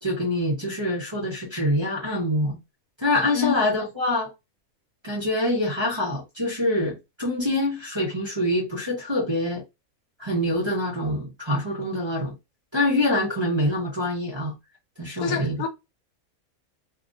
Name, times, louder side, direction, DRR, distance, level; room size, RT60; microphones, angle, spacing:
voice 1, 0.0-2.6 3.0-4.3 5.0-9.6 10.2-12.3 12.7-14.5 15.0-15.6, left 1 dB, 25° right, 0.7 m, -25 dB
voice 2, 15.2-15.7, left 9 dB, 80° left, 1.1 m, -27 dB
2.8 x 2.4 x 2.6 m
omnidirectional pair, 1.6 m